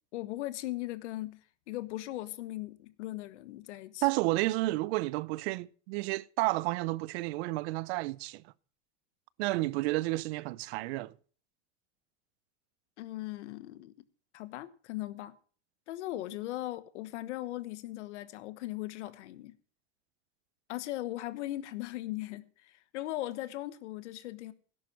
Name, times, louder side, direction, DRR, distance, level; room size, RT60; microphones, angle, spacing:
voice 1, 0.1-4.1 13.0-13.9 14.3-15.3 15.9-19.5 20.7-24.5, left 16 dB, 85° left, 1.3 m, -39 dB
voice 2, 4.0-8.4 9.4-11.1, right 20 dB, 65° right, 0.6 m, -31 dB
13.0 x 11.0 x 4.9 m
supercardioid pair, 140°, 34 cm